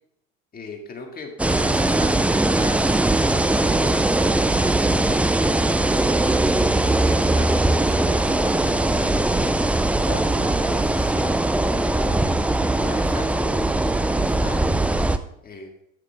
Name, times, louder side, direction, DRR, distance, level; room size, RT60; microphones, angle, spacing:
voice 1, 0.5-3.0 3.6-4.3 4.6-9.6 10.1-13.7 14.0-14.9 15.4-15.7, left 4 dB, 25° left, 3 dB, 2.0 m, -39 dB
sound 1, 1.4-15.2, right 2 dB, 5° right, 0.3 m, -20 dB
11.5 x 6.7 x 3.4 m, 0.75 s
supercardioid pair, 100°, 34 cm